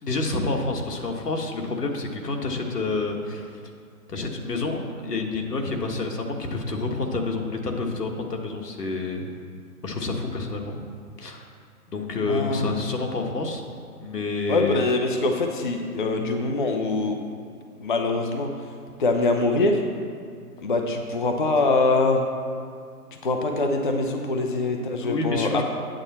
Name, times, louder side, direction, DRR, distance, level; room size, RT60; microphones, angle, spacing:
voice 1, 0.0-3.6 4.1-9.3 9.8-10.8 11.2-11.5 11.9-13.6 14.0-14.8 24.5-25.6, left 3 dB, 80° left, 2 dB, 1.6 m, -28 dB
voice 2, 12.3-12.9 14.5-17.2 17.8-18.5 19.0-19.8 20.6-22.2 23.2-25.6, left 3 dB, 35° left, 3 dB, 0.5 m, -23 dB
8.7 x 8.5 x 4.2 m, 2.2 s
hypercardioid pair, 155°, 46 cm